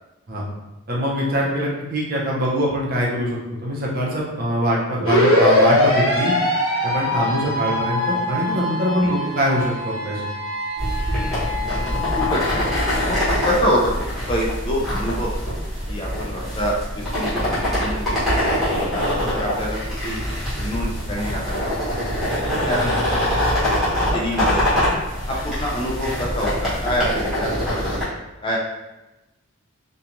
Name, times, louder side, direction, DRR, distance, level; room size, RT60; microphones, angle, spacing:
voice 1, 0.9-6.3 6.8-10.3, equal, 45° right, -3 dB, 0.5 m, -23 dB
sound 1, 5.1-13.1, left 1 dB, 70° left, 1.1 m, -22 dB
sound 2, 10.8-28.0, equal, ahead, 1.0 m, -24 dB
voice 2, 12.2-12.6 13.0-13.2 13.4-13.9 14.3-15.3 15.9-18.2 18.9-19.8 20.0-20.2 20.6-21.7 22.5-23.2 24.1-24.9 25.3-28.1 28.4-28.6, equal, 25° left, -3 dB, 0.4 m, -26 dB
2.9 x 2.2 x 2.5 m, 1.0 s
head